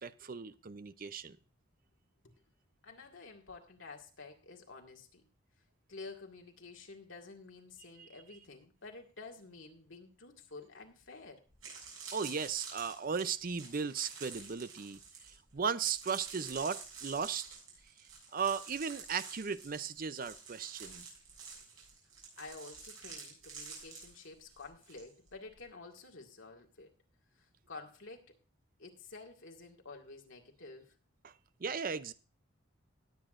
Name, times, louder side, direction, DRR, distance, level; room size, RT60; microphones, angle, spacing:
voice 1, 0.0-1.4 8.0-8.1 12.1-15.0 15.5-17.4 18.3-21.0 31.2-31.3 31.6-32.1, right 6 dB, 45° right, 0.5 m, -36 dB
voice 2, 2.8-5.3 5.9-11.4 22.4-26.9 27.4-28.3 28.8-30.9, left 3 dB, 70° left, 2.0 m, -50 dB
sound 1, 11.0-11.1 11.5-25.0 25.3-25.6, right 5 dB, 90° right, 7.1 m, -49 dB
18.5 x 8.2 x 2.5 m
head